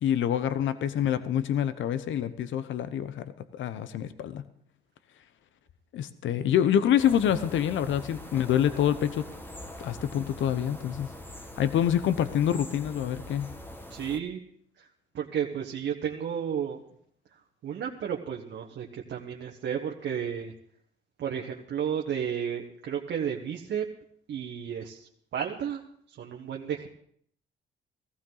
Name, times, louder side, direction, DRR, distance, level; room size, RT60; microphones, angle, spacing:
voice 1, 0.0-4.5 5.9-9.3 9.8-11.1 11.6-13.5, left 10 dB, 75° left, 13 dB, 0.9 m, -26 dB
sound 1, 7.0-14.2, left 1 dB, 10° left, 1.5 m, -43 dB
voice 2, 13.9-14.4 14.8-14.9 15.1-16.8 17.6-20.5 21.2-23.8 24.3-25.8 26.2-26.9, right 8 dB, 65° right, 1 dB, 1.3 m, -32 dB
15.5 x 15.0 x 4.0 m, 0.64 s
cardioid pair, 90°, 20 cm